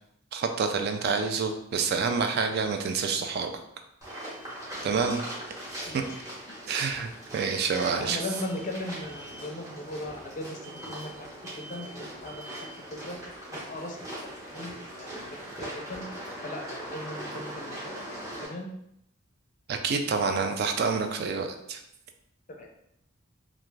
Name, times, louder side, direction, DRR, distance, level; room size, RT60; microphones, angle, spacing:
voice 1, 0.3-3.5 4.8-5.2 5.9-6.0 6.7-8.2 19.7-21.8, right 5 dB, 50° right, 6 dB, 0.3 m, -28 dB
sound 1, 4.0-18.5, right 1 dB, 15° right, 1.0 m, -41 dB
sound 2, 4.1-5.5 5.7-6.2 7.4-7.9 8.2-8.7 9.0-9.5 10.6-11.2 11.4-12.0 12.2-12.8, right 1 dB, 75° right, 0.7 m, -50 dB
voice 2, 8.0-10.6 10.9-11.1 11.6-12.4 12.9-13.2 13.7-15.1 15.6-16.0 16.4-18.7 22.6-22.7, left 1 dB, 40° left, 2 dB, 0.4 m, -38 dB
2.5 x 2.3 x 3.1 m, 0.76 s
head